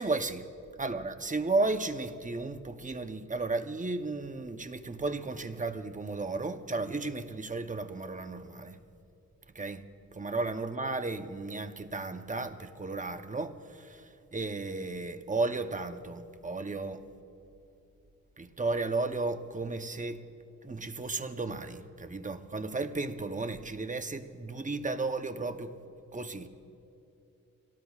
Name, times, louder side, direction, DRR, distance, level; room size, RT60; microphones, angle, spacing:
voice 1, 0.0-0.4 0.8-8.8 9.5-9.8 10.1-17.0 18.4-20.2 20.6-25.7 26.1-26.7, right 3 dB, 25° right, 8 dB, 0.8 m, -34 dB
26.0 x 18.0 x 2.4 m, 2.9 s
wide cardioid pair, 90°, 30 cm